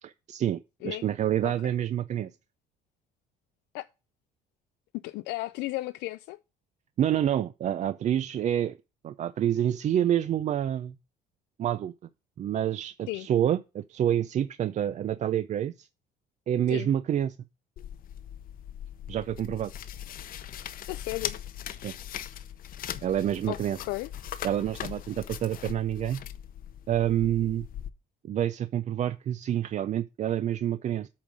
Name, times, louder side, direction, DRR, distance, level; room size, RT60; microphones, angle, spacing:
voice 1, 0.0-2.3 7.0-8.8 9.0-10.9 11.6-11.9 12.4-15.9 16.5-17.4 19.1-19.7 21.8-21.9 23.0-23.8 24.4-26.2 26.9-27.7 28.2-31.1, right 10 dB, 45° right, 0.4 m, -28 dB
voice 2, 5.0-6.4 13.1-13.3 16.7-16.9 20.9-21.4 23.5-24.1, left 19 dB, 90° left, 0.4 m, -34 dB
sound 1, 17.8-27.9, left 10 dB, 55° left, 0.7 m, -40 dB
8.4 x 3.9 x 6.1 m
cardioid pair, 110°, 17 cm